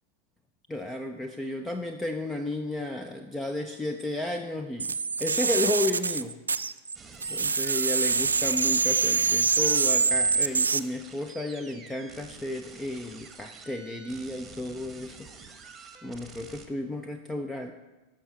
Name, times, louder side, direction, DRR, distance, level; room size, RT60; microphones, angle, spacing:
voice 1, 0.7-4.9 5.2-6.4 7.3-15.2 16.0-17.7, left 1 dB, 10° left, 6 dB, 0.5 m, -33 dB
sound 1, 4.8-7.0 7.2-10.8, right 5 dB, 75° right, 0.3 m, -25 dB
sound 2, 6.9-16.7, right 5 dB, 15° right, 1.2 m, -48 dB
13.0 x 5.2 x 5.6 m, 1.1 s
figure-of-eight pair, 90°, 0 cm